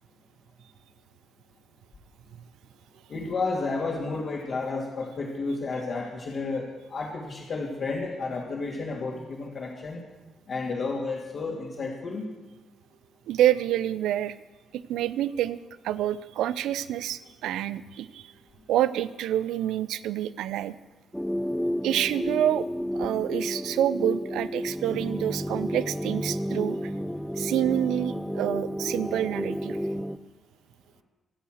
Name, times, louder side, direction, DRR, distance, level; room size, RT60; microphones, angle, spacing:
voice 1, 3.1-10.0 10.5-12.2, left 3 dB, 55° left, -4 dB, 3.2 m, -31 dB
voice 2, 13.3-14.3 14.7-15.6 15.8-18.3 18.7-20.8 21.8-22.7 22.9-26.9 27.4-29.8, right 12 dB, 70° right, 16 dB, 0.6 m, -27 dB
sound 1, 21.1-30.2, equal, ahead, 0.7 m, -31 dB
25.0 x 8.4 x 6.6 m, 1.2 s
hypercardioid pair, 45°, 0 cm